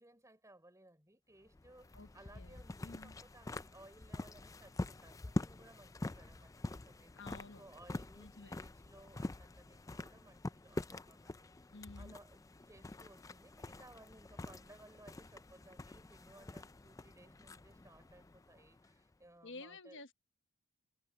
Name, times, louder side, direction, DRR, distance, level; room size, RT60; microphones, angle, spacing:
voice 1, 0.0-7.1 7.6-11.5 12.0-20.0, right 1 dB, 15° right, 3.8 m, -61 dB
sound 1, 1.5-19.1, left 2 dB, 15° left, 0.3 m, -46 dB
voice 2, 1.9-3.2 7.1-7.6 8.2-8.5 11.7-12.2 19.4-20.1, left 3 dB, 55° left, 1.2 m, -52 dB
head